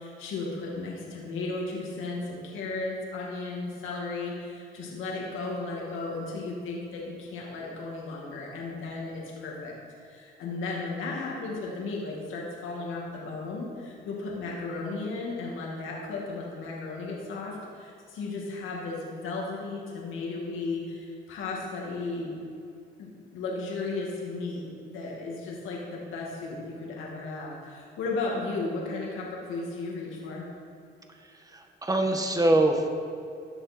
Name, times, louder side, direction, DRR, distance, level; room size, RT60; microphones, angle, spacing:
voice 1, 0.0-9.7 10.0-22.3 23.0-30.5, left 3 dB, 85° left, -3 dB, 2.5 m, -35 dB
voice 2, 31.5-32.9, right 2 dB, 20° right, 3 dB, 1.6 m, -24 dB
15.0 x 10.0 x 4.5 m, 2.4 s
cardioid pair, 90°, 20 cm